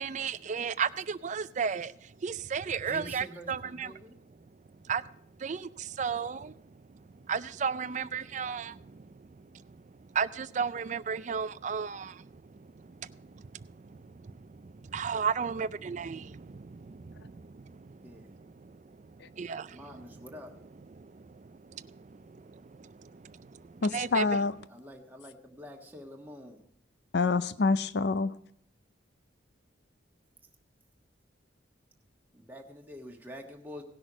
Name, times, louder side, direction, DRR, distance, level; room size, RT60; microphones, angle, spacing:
voice 1, 0.0-1.9 2.2-3.9 4.9-5.0 5.4-6.5 7.3-9.1 10.1-12.3 13.0-13.3 13.9-17.9 18.6-18.7 19.4-19.8 21.0-24.2, right 6 dB, 40° right, 0.4 m, -34 dB
voice 2, 2.8-4.2 7.9-8.0 18.0-18.3 19.7-20.5 24.7-26.6 32.3-33.8, equal, 10° right, 1.4 m, -46 dB
voice 3, 23.8-24.5 27.1-28.4, left 3 dB, 55° left, 0.5 m, -27 dB
17.5 x 6.3 x 4.9 m
head